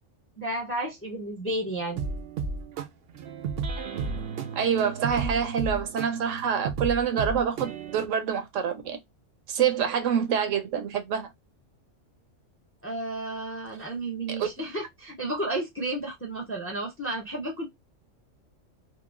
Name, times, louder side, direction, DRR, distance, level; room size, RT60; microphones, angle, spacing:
voice 1, 0.4-2.0 12.8-17.6, right 1 dB, 15° left, 0.5 m, -32 dB
sound 1, 2.0-8.1, right 5 dB, 65° right, 0.7 m, -33 dB
voice 2, 4.5-9.0 9.5-11.3 14.4-14.5, right 7 dB, 80° right, 1.0 m, -26 dB
2.9 x 2.4 x 2.4 m
omnidirectional pair, 1.3 m